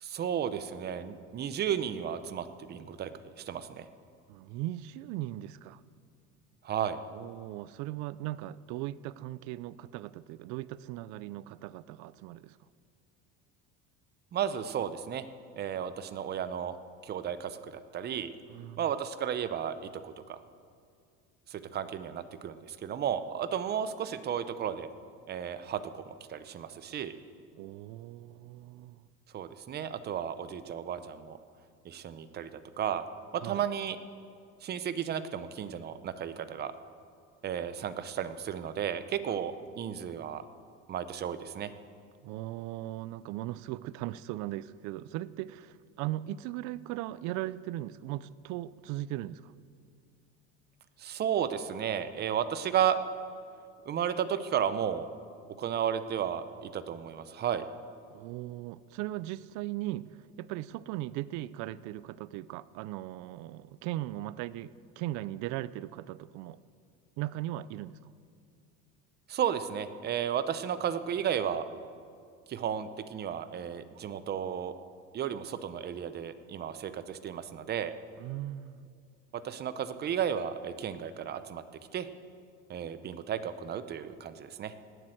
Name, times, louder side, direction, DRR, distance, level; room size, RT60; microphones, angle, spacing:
voice 1, 0.0-3.9 6.6-7.0 14.3-15.2 15.6-16.8 17.0-18.3 18.8-20.4 21.5-24.9 25.3-27.2 29.3-31.4 31.8-33.0 33.3-34.0 34.6-36.7 37.4-40.4 40.9-41.7 51.0-53.0 53.9-55.1 55.6-57.6 69.3-71.7 72.5-74.7 75.1-77.9 79.3-81.6 81.9-82.1 82.7-84.7, right 9 dB, 35° right, 12 dB, 0.8 m, -33 dB
voice 2, 4.3-5.8 7.1-12.6 18.5-18.8 27.5-29.0 33.4-33.6 42.2-49.5 58.1-66.6 67.2-68.0 78.2-78.9, right 15 dB, 70° right, 18 dB, 0.5 m, -38 dB
18.5 x 7.8 x 7.9 m, 2.3 s
cardioid pair, 135°, 30 cm